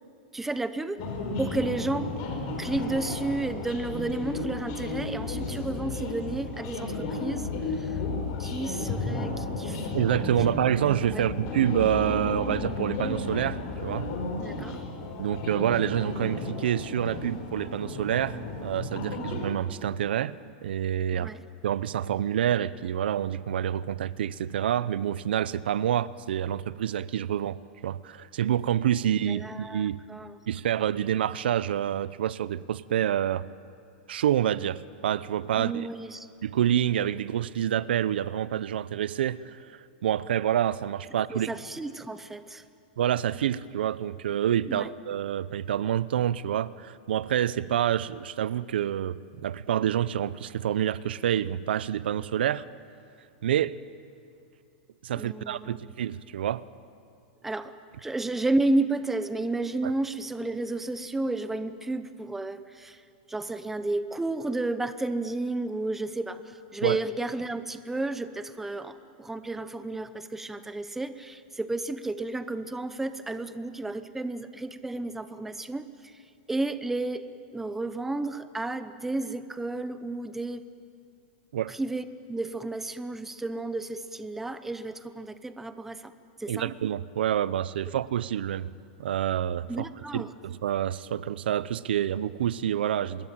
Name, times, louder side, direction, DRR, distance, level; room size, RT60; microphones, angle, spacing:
voice 1, 0.3-1.1 1.4-2.1 2.6-7.5 7.8-8.0 8.4-9.9 11.1-11.2 14.4-14.8 21.1-21.4 29.3-30.4 35.6-36.3 41.3-42.6 44.7-44.9 55.1-55.9 57.4-63.0 63.3-76.1 76.5-77.2 77.5-80.6 81.7-86.1 86.4-86.7 89.7-90.3, right 2 dB, 5° right, 11 dB, 0.8 m, -32 dB
sound 1, 1.0-19.5, left 3 dB, 45° left, 5.4 m, -33 dB
voice 2, 9.9-14.1 15.2-21.3 21.6-30.0 30.5-33.5 34.1-35.9 36.4-41.5 43.0-52.6 53.4-53.8 55.0-56.6 59.8-59.9 66.8-67.0 81.5-81.7 86.5-88.7 89.0-89.8 90.1-93.3, right 10 dB, 85° right, 17 dB, 0.7 m, -27 dB
25.0 x 21.5 x 9.1 m, 2.4 s
supercardioid pair, 160°, 5 cm